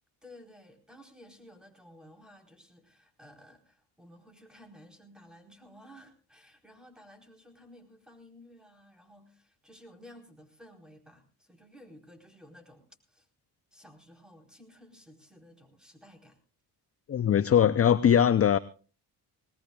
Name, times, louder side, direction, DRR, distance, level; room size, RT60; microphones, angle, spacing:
voice 1, 0.2-13.3 13.7-16.4, equal, ahead, 3 dB, 4.3 m, -54 dB
voice 2, 17.1-18.6, left 9 dB, 35° left, 16 dB, 0.6 m, -21 dB
20.0 x 19.5 x 2.4 m, 0.37 s
supercardioid pair, 70°, 44 cm